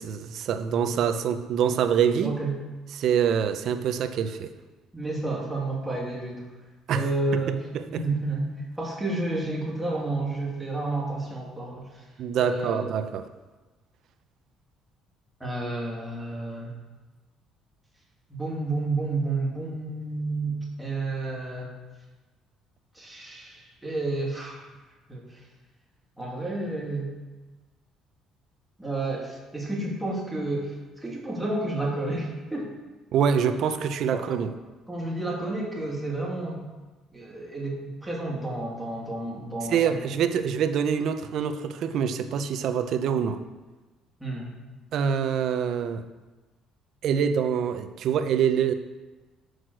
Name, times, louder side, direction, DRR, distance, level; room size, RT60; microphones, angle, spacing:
voice 1, 0.0-2.4 2.9-4.5 6.9-7.1 7.7-8.0 12.2-13.2 33.1-34.5 39.7-43.4 44.9-46.0 47.0-48.7, right 7 dB, 60° right, 8 dB, 0.7 m, -25 dB
voice 2, 2.2-2.6 4.9-6.5 6.9-8.5 8.8-12.0 12.4-12.8 15.4-16.7 18.3-21.7 22.9-24.7 25.1-25.4 26.2-27.1 28.8-32.7 34.1-34.4 34.9-36.6 37.1-40.0 44.2-44.5, right 2 dB, 5° right, -4 dB, 2.5 m, -31 dB
7.9 x 6.4 x 6.2 m, 1.2 s
cardioid pair, 125°, 0 cm